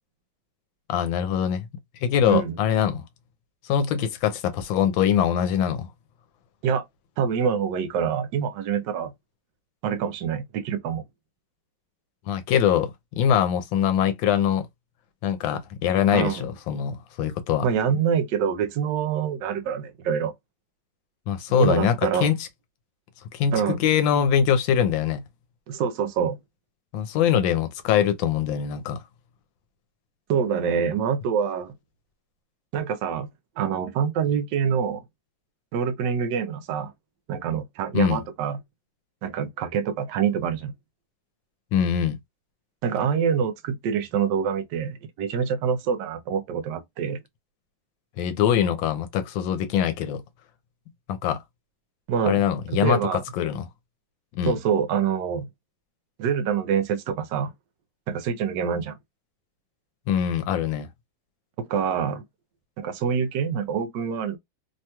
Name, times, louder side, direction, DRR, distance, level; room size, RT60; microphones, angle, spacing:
voice 1, 0.9-1.7 2.0-3.0 3.6-5.9 12.3-14.7 15.2-17.6 21.3-22.5 23.3-25.2 26.9-29.0 37.9-38.2 41.7-42.2 48.2-50.2 51.1-51.4 52.3-53.7 54.3-54.6 60.1-60.9, left 9 dB, 85° left, 1.4 m, -23 dB
voice 2, 7.2-9.1 9.8-11.0 16.1-16.5 17.6-20.3 21.5-22.3 23.5-23.8 25.7-26.4 30.3-31.8 32.7-33.3 33.6-35.0 35.7-36.9 37.3-38.6 39.2-40.7 42.8-47.2 52.1-52.4 52.7-53.2 54.4-55.5 56.2-57.5 58.1-59.0 61.6-62.2 62.8-64.4, right 7 dB, 75° right, 1.2 m, -25 dB
3.2 x 2.8 x 2.2 m
omnidirectional pair, 2.1 m